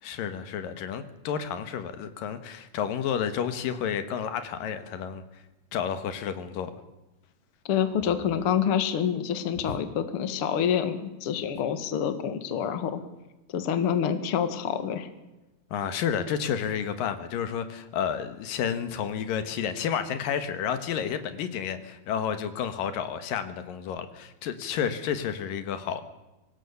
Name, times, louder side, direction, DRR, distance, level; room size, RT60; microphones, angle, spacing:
voice 1, 0.0-5.2 5.7-6.7 15.7-26.0, left 8 dB, 75° left, 11 dB, 3.0 m, -31 dB
voice 2, 7.7-13.0 13.5-15.1, left 8 dB, 50° left, 10 dB, 2.2 m, -27 dB
25.0 x 18.5 x 7.0 m, 1.0 s
omnidirectional pair, 4.0 m